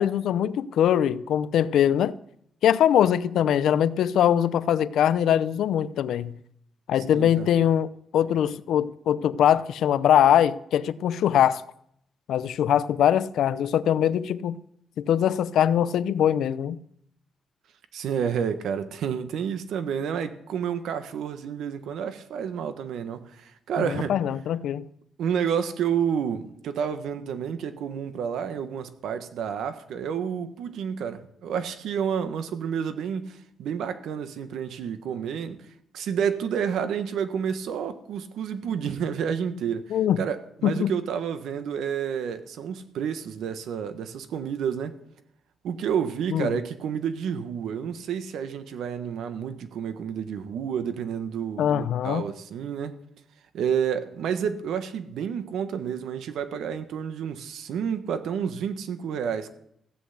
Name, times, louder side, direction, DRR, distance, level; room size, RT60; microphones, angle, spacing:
voice 1, 0.0-2.2 2.6-6.4 6.9-11.6 12.3-14.5 15.0-16.8 23.8-24.8 39.9-40.3 40.6-41.0 46.3-46.5 51.6-52.2, left 10 dB, 80° left, 0.6 m, -22 dB
voice 2, 7.1-7.5 17.9-24.1 25.2-35.6 35.9-45.0 45.6-53.0 53.5-59.5, right 7 dB, 85° right, 1.3 m, -30 dB
15.5 x 8.1 x 8.1 m
wide cardioid pair, 175°, 0 cm